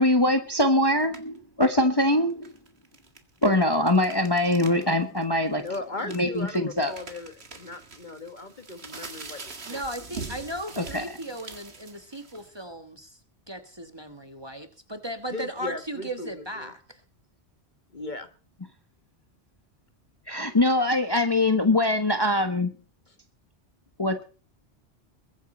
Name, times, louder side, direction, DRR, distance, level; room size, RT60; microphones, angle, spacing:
voice 1, 0.0-2.5 3.4-5.6 6.1-6.9 10.8-11.0 20.3-22.7 24.0-24.2, left 1 dB, 20° left, 7 dB, 1.2 m, -23 dB
sound 1, 1.0-1.4 2.3-4.8 5.2-5.3 5.7-12.6, right 4 dB, 70° right, 2.2 m, -43 dB
voice 2, 5.5-9.8 15.3-16.7 17.9-18.3, left 2 dB, 45° left, 9 dB, 1.6 m, -38 dB
voice 3, 9.6-13.2 13.5-17.0, right 1 dB, 25° right, 8 dB, 1.4 m, -37 dB
22.0 x 9.2 x 4.4 m, 0.37 s
omnidirectional pair, 1.1 m